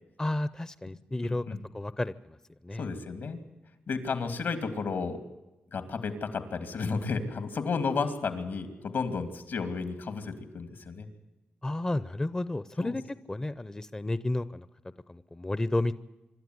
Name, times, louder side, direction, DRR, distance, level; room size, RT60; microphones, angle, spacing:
voice 1, 0.2-1.4 1.7-2.4 2.6-2.9 11.6-13.0 13.3-14.7 15.1-15.9, left 2 dB, 20° left, 15 dB, 0.6 m, -31 dB
voice 2, 1.2-1.6 2.8-3.4 3.9-5.2 5.7-11.1 12.8-12.9, left 4 dB, 75° left, 9 dB, 2.8 m, -32 dB
25.5 x 12.5 x 9.6 m, 1.0 s
cardioid pair, 75°, 4 cm